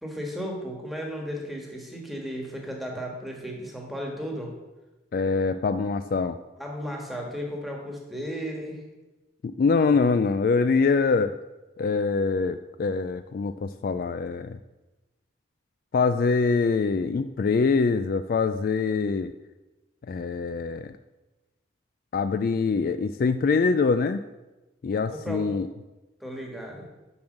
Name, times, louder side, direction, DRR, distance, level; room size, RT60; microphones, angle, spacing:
voice 1, 0.0-4.5 6.6-8.8 25.1-25.5 26.2-26.9, equal, ahead, 0 dB, 1.5 m, -34 dB
voice 2, 5.1-6.4 9.4-11.3 11.8-14.6 15.9-19.3 20.1-20.9 22.1-24.2 24.8-25.7, left 4 dB, 50° left, 10 dB, 0.3 m, -24 dB
7.0 x 6.2 x 6.5 m, 1.1 s
head